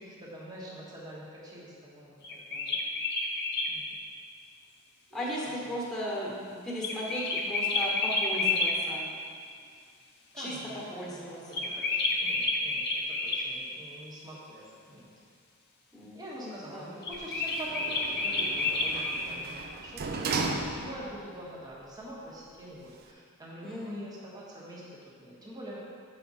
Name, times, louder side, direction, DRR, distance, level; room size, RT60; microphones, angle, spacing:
voice 1, 0.0-2.8 3.7-4.0 5.1-5.2 10.3-15.1 16.1-25.8, right 1 dB, 20° right, -6 dB, 1.3 m, -45 dB
sound 1, 2.2-3.7 6.8-8.7 11.5-13.5 17.0-19.2, left 3 dB, 50° left, 0.8 m, -29 dB
voice 2, 5.1-9.1 10.3-10.6 10.9-11.7 15.9-16.9 23.6-23.9, equal, 5° left, -6 dB, 1.5 m, -36 dB
Sliding door, 17.1-21.2 21.7-21.8, right 3 dB, 45° right, 0.5 m, -36 dB
7.8 x 4.9 x 4.1 m, 2.2 s
head